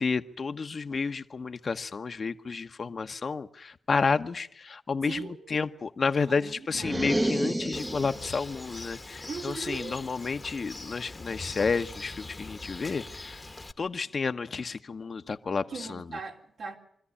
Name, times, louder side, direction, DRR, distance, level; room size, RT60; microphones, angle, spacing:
voice 1, 0.0-13.4 13.8-16.0, left 4 dB, 55° left, 1.0 m, -31 dB
voice 2, 5.1-5.4 6.3-7.1 9.3-10.0 15.7-16.8, right 4 dB, 75° right, 3.2 m, -39 dB
sound 1, 6.7-8.4, right 1 dB, 15° right, 0.9 m, -29 dB
Bird, 7.7-13.7, left 2 dB, 25° left, 1.1 m, -42 dB
24.5 x 13.5 x 9.9 m
cardioid pair, 65°, 0 cm